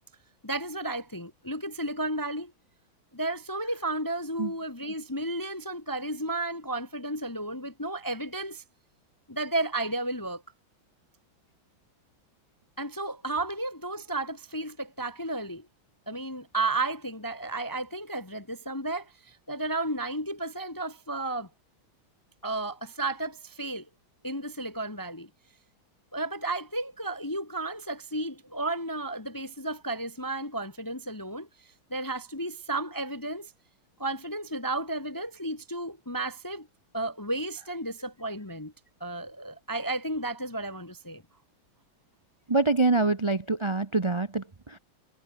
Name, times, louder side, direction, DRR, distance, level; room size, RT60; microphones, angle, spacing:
voice 1, 0.4-2.5 3.1-8.6 9.3-10.4 12.8-15.7 16.1-21.5 22.4-23.9 24.2-25.3 26.1-31.5 31.9-33.5 34.0-36.7 36.9-38.7 39.0-41.2, right 2 dB, 20° left, 0.5 m, -33 dB
voice 2, 42.5-44.8, right 3 dB, 40° right, 0.4 m, -25 dB
omnidirectional pair, 2.2 m